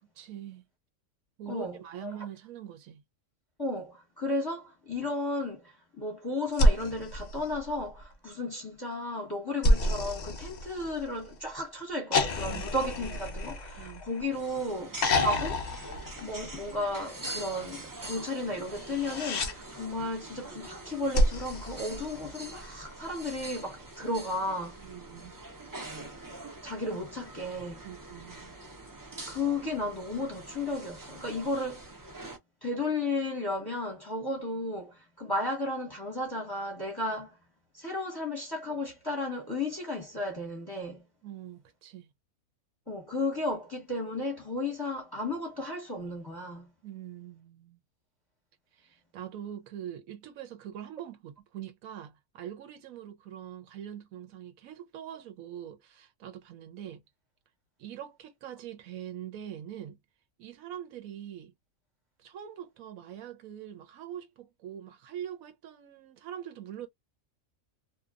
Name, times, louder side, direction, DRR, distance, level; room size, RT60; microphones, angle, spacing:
voice 1, 0.2-0.6 1.4-3.0 12.5-12.7 13.0-13.4 13.8-14.1 24.8-25.3 27.8-28.5 41.2-42.1 46.8-47.8 48.7-57.0 57.8-60.0 60.4-61.5 62.2-66.9, right 10 dB, 80° right, 1.1 m, -43 dB
voice 2, 1.5-2.1 3.6-15.7 16.2-24.8 26.6-27.8 29.3-31.9 32.6-37.3 37.7-41.0 42.9-46.7, left 2 dB, 20° left, 0.8 m, -34 dB
sound 1, 6.5-8.1 9.6-11.3 12.1-14.4 15.0-16.8 18.8-19.5 21.1-22.6 24.1-24.2, left 1 dB, 75° left, 0.4 m, -29 dB
sound 2, 14.3-32.4, right 2 dB, 30° right, 0.4 m, -44 dB
2.8 x 2.2 x 2.3 m
omnidirectional pair, 1.5 m